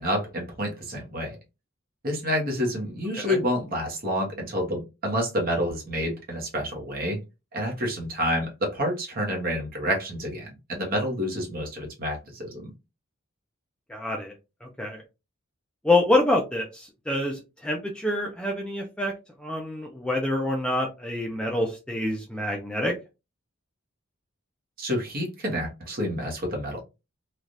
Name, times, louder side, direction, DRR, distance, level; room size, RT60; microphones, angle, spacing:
voice 1, 0.0-1.4 2.0-7.2 7.5-12.7 24.8-26.8, equal, 45° right, 0 dB, 1.0 m, -28 dB
voice 2, 13.9-14.3 14.6-15.0 15.8-19.1 19.4-22.9, left 1 dB, 5° left, 0 dB, 0.4 m, -26 dB
3.2 x 2.4 x 2.6 m, 0.26 s
head